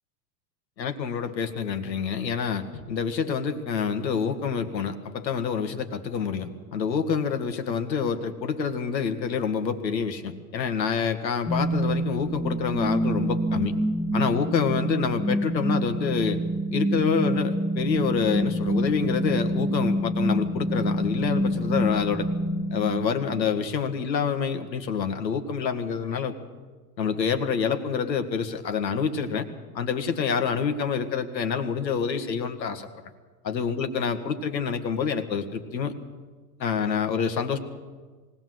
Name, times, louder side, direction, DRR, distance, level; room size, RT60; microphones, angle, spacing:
voice 1, 0.8-13.8 14.1-16.4 16.7-22.3 22.7-26.4 27.0-29.5 29.7-32.9 33.4-35.9 36.6-37.6, left 6 dB, 85° left, 7 dB, 2.1 m, -27 dB
sound 1, 11.4-23.4, equal, 5° left, 1.1 m, -27 dB
20.0 x 17.5 x 7.9 m, 1.4 s
hypercardioid pair, 105°, 49 cm